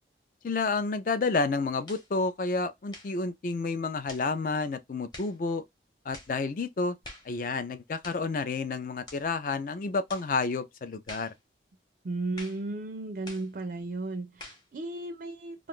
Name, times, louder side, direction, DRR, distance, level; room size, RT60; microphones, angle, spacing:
voice 1, 0.4-5.6 6.1-7.0 7.3-11.3, left 3 dB, 50° left, 0.4 m, -30 dB
sound 1, 1.9-2.1 2.9-3.2 4.1-4.3 5.1-5.4 6.1-6.4 7.0-7.3 8.0-8.3 9.1-9.3 10.1-10.3 11.1-11.4 12.4-12.7 13.3-13.5 14.4-14.7, left 2 dB, 25° left, 0.9 m, -46 dB
voice 2, 12.0-15.7, right 2 dB, 50° right, 0.4 m, -35 dB
2.4 x 2.3 x 3.5 m
head